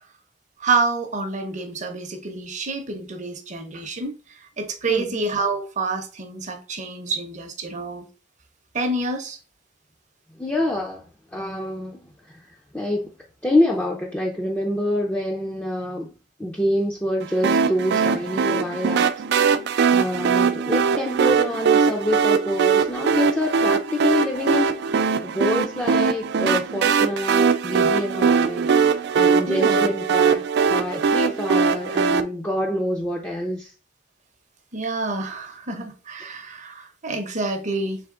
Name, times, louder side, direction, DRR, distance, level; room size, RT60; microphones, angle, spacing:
voice 1, 0.6-8.1 8.7-9.4 29.5-29.9 34.7-38.0, right 3 dB, 40° right, 0.7 m, -28 dB
voice 2, 10.4-11.0 11.3-12.0 12.7-13.1 13.4-16.1 16.4-19.1 19.9-24.9 25.2-28.9 29.1-30.4 30.7-33.7, left 1 dB, 10° left, 0.5 m, -26 dB
sound 1, 17.4-32.2, right 6 dB, 60° right, 0.3 m, -21 dB
3.5 x 3.4 x 3.7 m
head